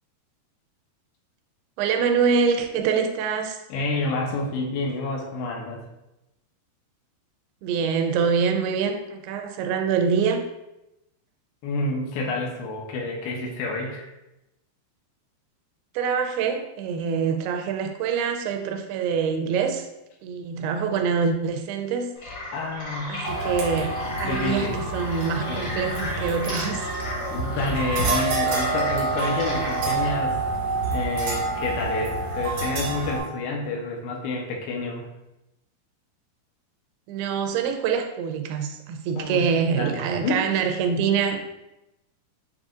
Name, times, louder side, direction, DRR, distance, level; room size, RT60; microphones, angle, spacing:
voice 1, 1.8-3.6 7.6-10.4 15.9-19.9 20.2-22.1 23.1-23.9 24.2-26.9 37.1-41.4, right 6 dB, 85° right, 6 dB, 2.4 m, -25 dB
voice 2, 3.7-5.8 11.6-14.1 22.5-23.2 24.2-24.8 25.5-25.8 27.3-30.4 30.9-35.1 39.2-39.5 39.8-40.5, left 2 dB, 80° left, -1 dB, 2.6 m, -29 dB
sound 1, 22.1-30.1, left 1 dB, 50° left, 1.5 m, -35 dB
sound 2, 23.2-33.2, right 3 dB, 65° right, 1.6 m, -28 dB
7.4 x 2.9 x 2.4 m, 0.93 s
omnidirectional pair, 4.5 m